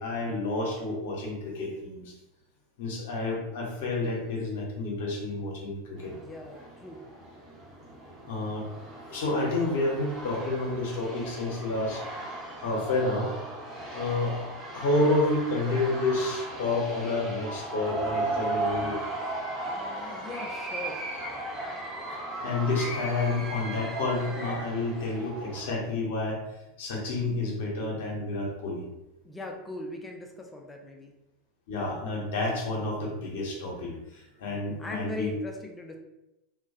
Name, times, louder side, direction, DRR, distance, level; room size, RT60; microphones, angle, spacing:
voice 1, 0.0-2.1 2.8-6.1 8.3-8.7 9.1-12.0 12.6-13.3 13.9-14.3 14.7-19.0 21.8-21.9 22.3-26.4 26.8-28.9 31.7-35.3, left 2 dB, 65° left, -2 dB, 0.7 m, -29 dB
sound 1, 6.0-25.7, right 2 dB, 30° right, 0.9 m, -37 dB
voice 2, 6.1-7.0 18.3-18.6 19.7-21.1 29.2-31.1 34.8-36.0, left 2 dB, 15° left, 2 dB, 0.4 m, -40 dB
2.2 x 2.1 x 2.6 m, 0.94 s
hypercardioid pair, 85°, 0 cm